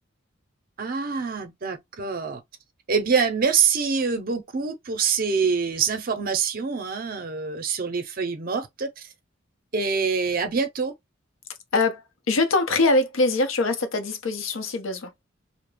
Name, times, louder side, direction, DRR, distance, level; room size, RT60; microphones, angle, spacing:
voice 1, 0.8-2.4 2.9-9.1 9.7-10.9, right 5 dB, 45° right, 0.5 m, -25 dB
voice 2, 11.7-15.1, left 2 dB, 85° left, 0.6 m, -23 dB
2.3 x 2.0 x 3.2 m
head